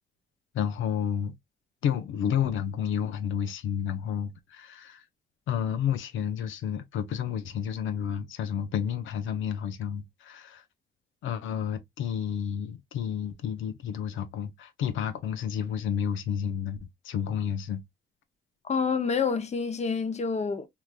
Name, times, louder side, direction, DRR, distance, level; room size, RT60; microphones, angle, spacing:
voice 1, 0.5-1.3 1.8-5.0 5.5-10.6 11.2-17.8, left 8 dB, 80° left, 0.7 m, -31 dB
voice 2, 18.6-20.7, left 5 dB, 35° left, 0.7 m, -28 dB
3.6 x 2.9 x 2.3 m
cardioid pair, 90°, 20 cm